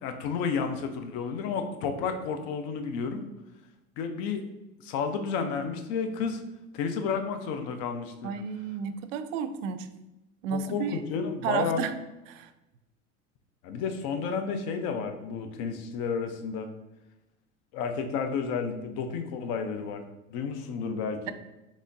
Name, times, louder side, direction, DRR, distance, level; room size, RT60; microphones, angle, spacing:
voice 1, 0.0-3.2 4.0-4.4 4.8-6.4 6.7-8.3 10.5-11.8 13.6-16.7 17.7-20.0 20.3-21.3, left 5 dB, 55° left, 7 dB, 0.7 m, -31 dB
voice 2, 8.2-9.9 10.4-11.0 11.4-11.9 12.3-12.5, right 6 dB, 65° right, 10 dB, 0.5 m, -32 dB
4.0 x 3.0 x 2.6 m, 0.96 s
hypercardioid pair, 85°, 42 cm